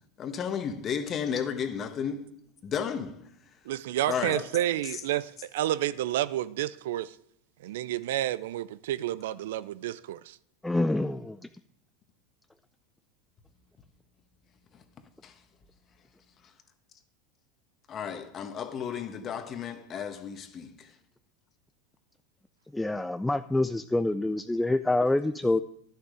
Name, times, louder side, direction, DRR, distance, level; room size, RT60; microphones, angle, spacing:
voice 1, 0.2-2.3 2.6-3.3 4.1-4.5 4.8-5.0 14.7-14.8 15.2-15.3 17.9-21.0, left 7 dB, 35° left, 1.2 m, -33 dB
voice 2, 3.7-7.2 7.6-10.4, right 13 dB, 70° right, 0.4 m, -30 dB
voice 3, 10.6-11.4 22.7-25.6, left 2 dB, 5° left, 0.4 m, -26 dB
11.0 x 6.7 x 4.9 m
hypercardioid pair, 90°, 0 cm